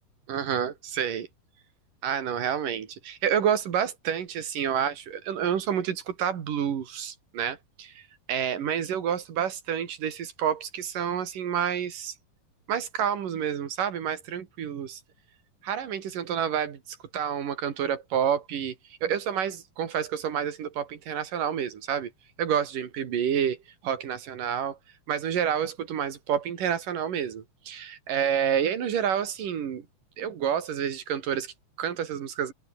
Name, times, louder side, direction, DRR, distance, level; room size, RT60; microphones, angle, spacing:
voice 1, 0.3-1.3 2.0-12.2 12.7-15.0 15.6-18.8 19.0-22.1 22.4-23.6 23.8-24.8 25.1-29.9 30.2-32.5, right 8 dB, 80° right, 4.0 m, -29 dB
omnidirectional pair, 3.8 m